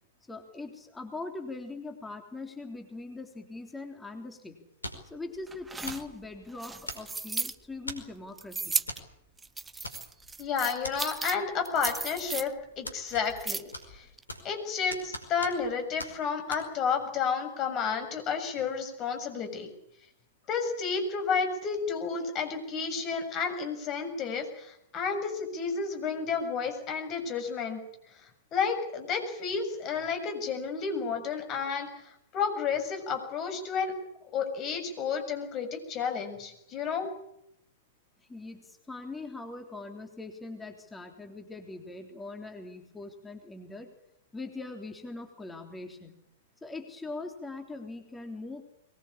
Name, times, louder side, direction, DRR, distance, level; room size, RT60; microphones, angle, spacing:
voice 1, 0.3-4.6 5.0-8.8 38.3-43.9 44.3-46.1 46.6-48.6, left 3 dB, 10° left, 4 dB, 3.5 m, -41 dB
sound 1, 4.8-5.2 5.9-6.1 6.9-7.3 7.9-8.2 8.9-9.1 9.3-9.4 9.8-10.3 10.8-11.0 11.9-12.3 12.9-13.5 13.7-14.6 14.9-15.7 16.0-16.1 16.5-16.6, left 1 dB, 85° left, 5.0 m, -40 dB
sound 2, 5.5-7.5 8.4-9.0 9.4-11.4 11.6-12.5 13.1-13.8 14.2-14.3, right 3 dB, 10° right, 1.0 m, -35 dB
voice 2, 10.4-13.6 13.9-14.1 14.4-19.7 20.5-27.8 28.2-28.3 28.5-33.9 34.3-37.1, left 6 dB, 30° left, 7 dB, 6.9 m, -31 dB
22.5 x 21.5 x 8.7 m, 0.77 s
figure-of-eight pair, 110°, 0 cm